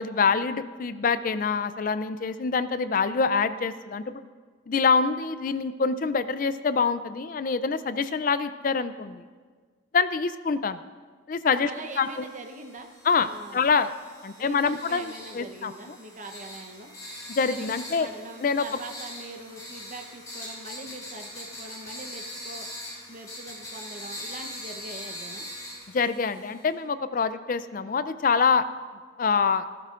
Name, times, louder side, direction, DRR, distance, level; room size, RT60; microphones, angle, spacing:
voice 1, 0.0-4.2 4.7-9.2 9.9-10.8 11.3-11.7 12.0-12.2 13.0-13.9 14.2-16.0 17.4-18.1 18.4-18.6 25.9-28.6 29.2-29.7, left 5 dB, 40° left, 13 dB, 0.4 m, -25 dB
voice 2, 11.6-12.9 13.2-13.6 14.4-16.9 17.4-22.7 23.1-25.5, right 2 dB, 40° right, 5 dB, 0.8 m, -42 dB
sound 1, 11.8-26.7, left 1 dB, 20° left, 3.1 m, -42 dB
15.0 x 13.5 x 2.5 m, 1.5 s
head